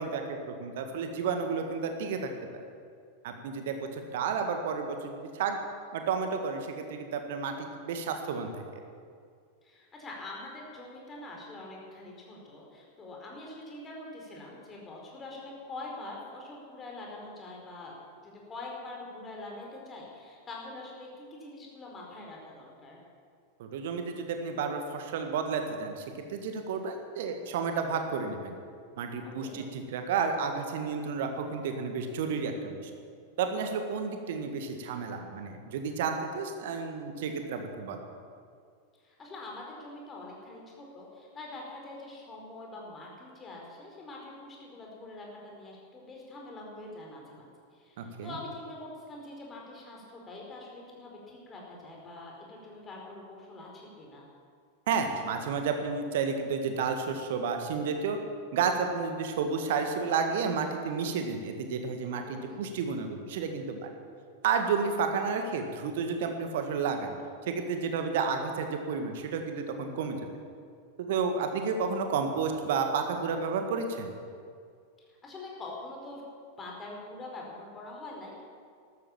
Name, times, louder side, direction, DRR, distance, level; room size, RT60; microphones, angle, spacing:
voice 1, 0.0-2.2 2.5-2.6 3.2-5.6 5.9-8.8 23.6-26.0 26.3-28.5 29.0-32.9 33.4-38.0 48.0-48.4 54.9-58.2 58.5-63.9 64.4-67.1 67.5-70.2 71.0-74.1, right 5 dB, 55° right, 5 dB, 1.8 m, -31 dB
voice 2, 9.6-18.0 18.2-23.0 29.2-29.6 39.0-54.2 62.2-62.6 75.1-76.2 76.6-78.4, left 2 dB, 20° left, -2 dB, 4.6 m, -44 dB
14.0 x 12.5 x 7.3 m, 2.2 s
figure-of-eight pair, 90°, 0 cm